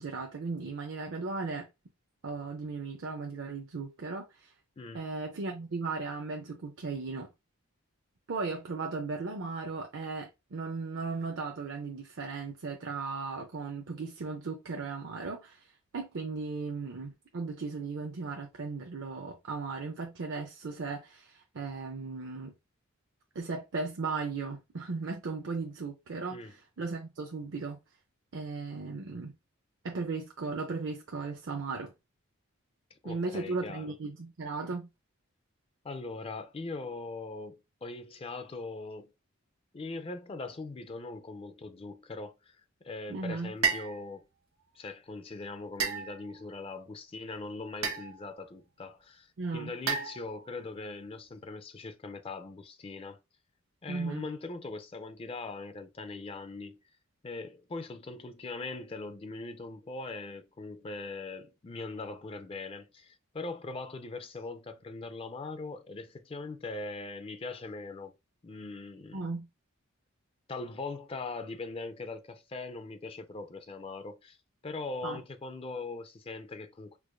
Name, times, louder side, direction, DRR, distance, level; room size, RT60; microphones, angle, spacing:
voice 1, 0.0-1.7 2.2-4.5 4.9-7.3 8.3-22.5 23.3-27.8 28.3-29.3 29.8-31.9 33.0-34.9 43.1-43.5 49.4-49.7 53.9-54.3 69.1-69.5 75.0-75.2, right 4 dB, 55° right, 0.5 m, -36 dB
voice 2, 32.9-33.9 35.8-39.1 39.7-42.6 42.8-44.3 44.7-53.2 53.8-56.8 57.2-68.2 68.4-69.3 70.5-74.4 74.6-77.0, left 3 dB, 25° left, 0.3 m, -41 dB
sound 1, 43.6-44.0 45.8-46.5 47.8-48.3 49.9-50.5, right 6 dB, 85° right, 1.0 m, -32 dB
4.6 x 2.5 x 2.2 m
head